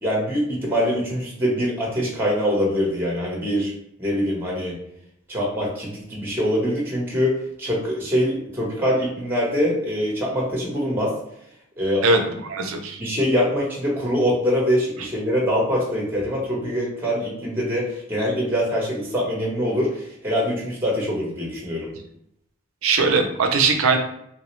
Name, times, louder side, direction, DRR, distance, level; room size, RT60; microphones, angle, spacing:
voice 1, 0.0-3.7 4.0-4.8 5.3-11.1 11.8-12.1 13.0-21.9, equal, 10° right, -3 dB, 0.8 m, -24 dB
voice 2, 12.0-13.0 22.8-24.0, right 4 dB, 80° right, 5 dB, 0.5 m, -20 dB
3.2 x 2.0 x 3.0 m, 0.72 s
head